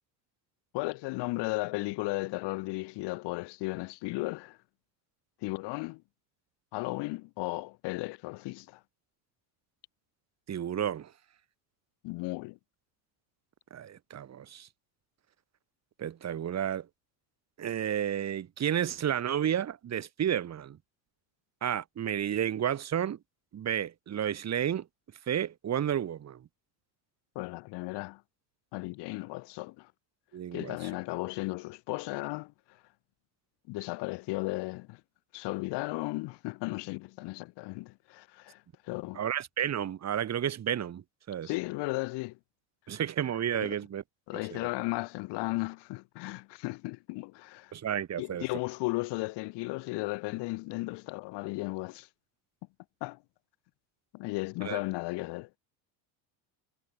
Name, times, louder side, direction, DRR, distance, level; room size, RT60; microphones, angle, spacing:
voice 1, 0.7-4.6 5.4-6.0 6.7-8.8 12.0-12.6 27.3-28.2 28.7-29.9 30.5-32.5 33.7-35.0 35.3-39.2 41.4-42.4 43.6-43.8 44.3-47.7 48.2-52.1 53.0-53.2 54.1-55.6, left 23 dB, 65° left, 3.0 m, -35 dB
voice 2, 10.5-11.1 13.7-14.7 16.0-16.9 17.6-20.8 21.6-23.2 23.5-24.9 25.3-26.5 30.3-30.8 39.2-41.5 42.9-44.0 44.3-44.6 47.7-48.5 54.6-54.8, right 9 dB, 35° right, 5.1 m, -31 dB
cardioid pair, 130°, 44 cm